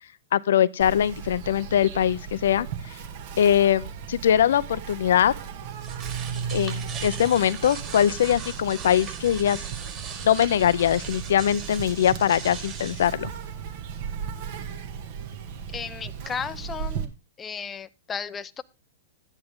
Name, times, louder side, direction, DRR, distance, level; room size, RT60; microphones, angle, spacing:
voice 1, 0.3-2.7 3.4-5.3 6.5-9.6 10.2-13.3, left 10 dB, 70° left, 0.6 m, -22 dB
Insect, 0.8-17.0, right 7 dB, 55° right, 2.0 m, -37 dB
sound 1, 5.6-13.1, right 6 dB, 30° right, 4.2 m, -36 dB
voice 2, 15.7-17.1 17.4-18.6, left 6 dB, 20° left, 0.6 m, -34 dB
12.0 x 9.9 x 3.6 m
hypercardioid pair, 120°, 0 cm